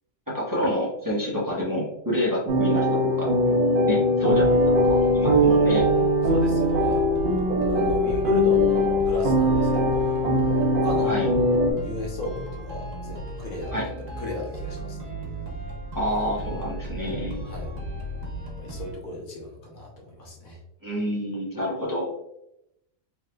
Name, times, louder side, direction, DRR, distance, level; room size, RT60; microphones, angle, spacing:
voice 1, 0.3-3.3 3.8-5.9 11.0-11.3 13.7-13.9 15.9-17.4 20.8-22.1, equal, 15° right, -6 dB, 1.0 m, -28 dB
sound 1, 2.5-11.7, equal, 50° right, 0.8 m, -21 dB
sound 2, 4.4-18.9, right 2 dB, 70° right, 1.3 m, -35 dB
voice 2, 6.2-7.0 7.6-10.1 10.7-11.2 11.8-15.1 17.4-17.7 18.6-20.6, left 1 dB, 80° left, 0 dB, 1.5 m, -36 dB
4.7 x 3.3 x 2.3 m, 0.80 s
omnidirectional pair, 1.4 m